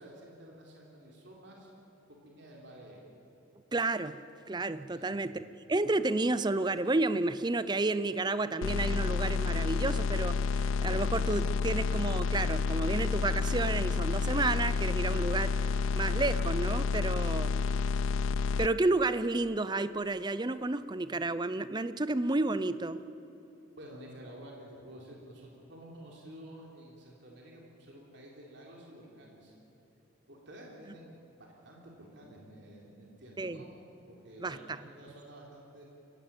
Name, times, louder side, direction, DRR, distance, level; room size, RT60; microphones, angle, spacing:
voice 1, 0.0-1.7 2.1-3.0 4.9-5.2 17.6-17.9 23.8-29.5 30.3-35.8, right 1 dB, 55° right, -2 dB, 3.7 m, -51 dB
voice 2, 3.7-4.2 4.5-5.4 5.7-17.5 18.6-23.0 33.4-33.6 34.4-34.6, right 2 dB, 20° right, 14 dB, 0.5 m, -31 dB
sound 1, 8.6-18.7, left 4 dB, 75° left, 0.4 m, -30 dB
23.5 x 17.0 x 8.9 m, 2.9 s
head